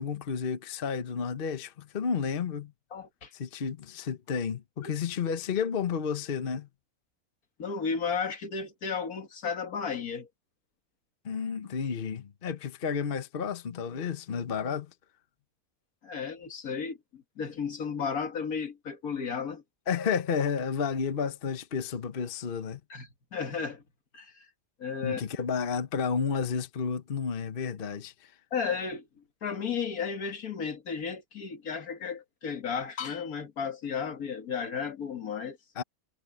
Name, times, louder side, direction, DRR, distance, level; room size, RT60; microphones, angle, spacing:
voice 1, 0.0-2.7 3.3-6.7 11.2-14.9 19.9-22.8 25.0-28.3 35.8-35.9, left 6 dB, 40° left, 1.1 m, -31 dB
voice 2, 2.9-3.3 4.8-4.9 7.6-10.3 16.0-19.6 22.9-23.8 24.1-24.5 24.8-25.2 28.5-29.1 29.4-35.6, left 6 dB, 75° left, 2.2 m, -34 dB
omnidirectional pair, 1.6 m